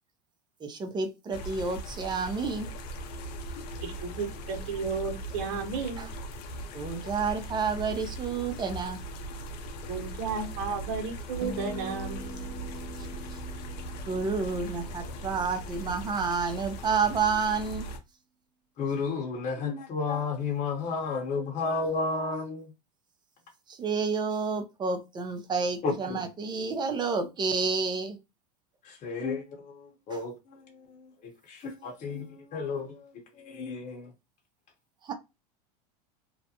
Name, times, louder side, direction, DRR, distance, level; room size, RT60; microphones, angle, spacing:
voice 1, 0.6-2.7 6.0-6.1 6.7-9.0 14.1-17.9 23.7-28.2 30.1-30.2 35.0-35.1, right 5 dB, 20° right, 0.6 m, -30 dB
sound 1, 1.3-18.0, right 1 dB, 70° left, 0.6 m, -39 dB
voice 2, 3.8-6.1 9.9-12.2, right 5 dB, 55° right, 0.9 m, -33 dB
sound 2, 11.4-15.7, right 1 dB, 80° right, 1.0 m, -43 dB
voice 3, 18.8-22.7 25.8-26.3 28.8-34.1, left 4 dB, 40° left, 1.0 m, -33 dB
2.4 x 2.1 x 2.8 m
supercardioid pair, 115°, 21 cm